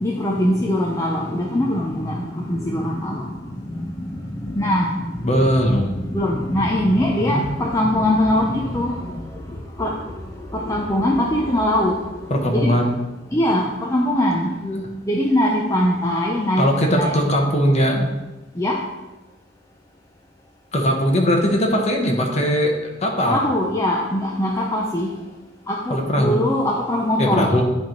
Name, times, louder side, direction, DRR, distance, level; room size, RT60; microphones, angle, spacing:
voice 1, 0.0-3.3 3.7-5.6 6.0-9.2 9.5-10.1 10.5-12.0 12.5-12.8 13.3-14.5 15.1-17.2 18.6-18.8 23.3-25.1 25.7-27.6, left 1 dB, 20° left, -2 dB, 0.6 m, -22 dB
voice 2, 5.2-6.0 7.2-7.4 12.3-12.9 14.6-14.8 16.6-18.1 20.7-22.7 23.0-23.4 25.9-26.4 27.2-27.6, equal, 35° left, 2 dB, 1.1 m, -19 dB
10.5 x 3.5 x 4.5 m, 1.1 s
head